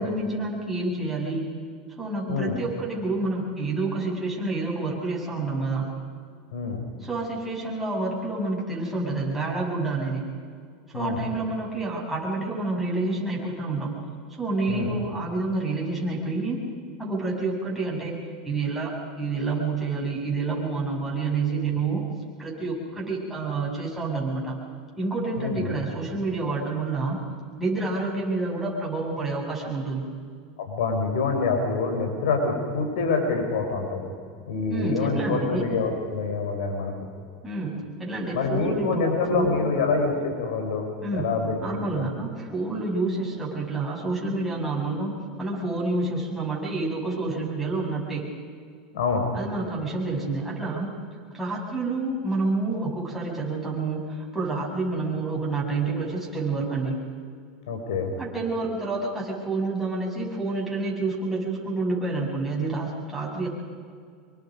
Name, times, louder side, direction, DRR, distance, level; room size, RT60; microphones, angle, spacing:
voice 1, 0.0-1.5 2.0-5.9 7.0-10.2 10.9-13.9 14.4-16.6 17.0-18.2 18.4-22.1 22.4-24.6 25.0-27.2 27.6-30.0 34.7-35.6 37.4-39.7 41.0-41.3 41.6-48.3 49.3-50.9 51.3-57.0 58.2-63.5, right 3 dB, 5° right, -4 dB, 7.9 m, -28 dB
voice 2, 6.5-6.8 10.9-11.2 14.7-14.9 25.4-25.8 30.6-34.1 34.5-36.9 38.3-41.6 41.9-42.0 48.9-49.2 57.7-58.1, left 4 dB, 80° left, 2 dB, 4.6 m, -26 dB
26.0 x 23.5 x 5.4 m, 2.1 s
supercardioid pair, 120°, 4 cm